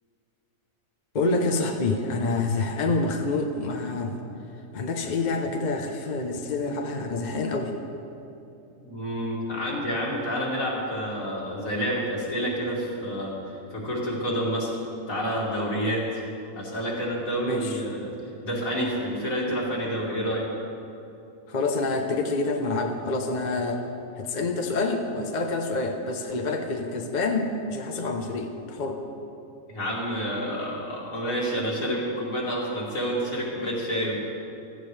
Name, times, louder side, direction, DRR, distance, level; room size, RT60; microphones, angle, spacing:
voice 1, 1.1-4.1 4.7-7.7 17.4-17.8 21.5-23.8 24.2-29.0, left 3 dB, 40° left, 3 dB, 0.8 m, -27 dB
voice 2, 8.8-13.4 13.7-14.7 15.1-16.0 16.6-18.1 18.4-20.5 29.7-34.2, equal, 65° left, -4 dB, 2.9 m, -28 dB
15.5 x 14.0 x 3.3 m, 2.8 s
omnidirectional pair, 1.5 m